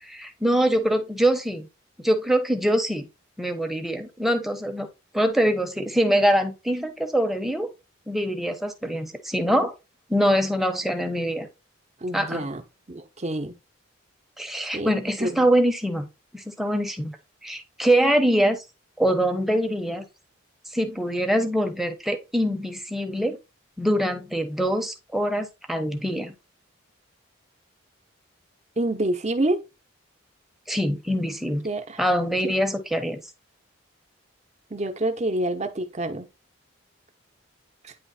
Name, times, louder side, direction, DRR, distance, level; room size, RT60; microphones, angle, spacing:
voice 1, 0.0-1.7 2.0-3.1 3.4-4.9 5.1-7.7 8.1-9.7 10.1-11.5 12.1-12.4 14.4-16.1 16.3-17.2 17.4-18.6 19.0-20.0 20.7-23.4 23.8-26.3 30.7-31.7 32.0-33.2, equal, ahead, 0.9 m, -24 dB
voice 2, 12.0-12.6 12.9-13.6 14.7-15.5 28.8-29.6 31.6-32.0 32.4-32.5 34.7-36.3 37.8-37.9, right 1 dB, 30° right, 0.9 m, -27 dB
9.4 x 3.2 x 4.2 m
head